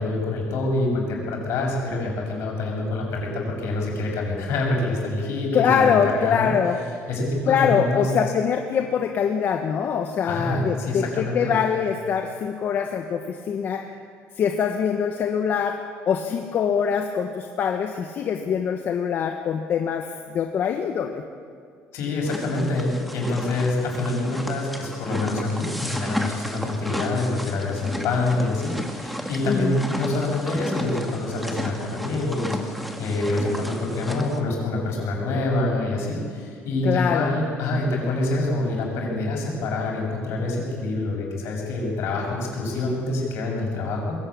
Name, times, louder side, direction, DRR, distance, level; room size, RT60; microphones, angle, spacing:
voice 1, 0.0-6.5 7.1-8.1 10.2-11.6 21.9-44.2, left 2 dB, 70° left, 0 dB, 7.0 m, -26 dB
voice 2, 5.5-6.8 7.5-13.8 14.4-15.8 16.1-21.2 29.5-29.8 36.8-37.3, left 7 dB, 50° left, 4 dB, 1.3 m, -23 dB
sound 1, 22.2-34.4, equal, ahead, 2.0 m, -33 dB
21.5 x 16.5 x 8.7 m, 2.2 s
cardioid pair, 130°, 5 cm